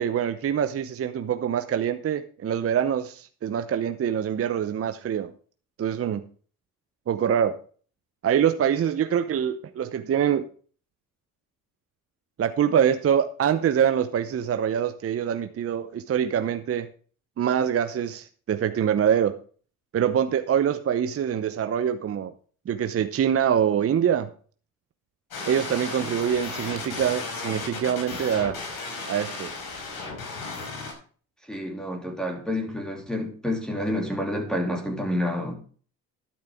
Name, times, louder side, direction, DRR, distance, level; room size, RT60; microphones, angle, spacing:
voice 1, 0.0-5.3 5.8-6.2 7.1-7.5 8.2-10.5 12.4-16.9 17.4-19.4 19.9-22.3 22.7-24.3 25.5-28.6 29.1-29.5, right 9 dB, 35° right, 0.8 m, -24 dB
sound 1, 25.3-30.9, left 3 dB, 55° left, 5.0 m, -34 dB
voice 2, 31.4-35.6, left 1 dB, ahead, 2.9 m, -29 dB
11.5 x 10.5 x 3.6 m
hypercardioid pair, 70°, 42 cm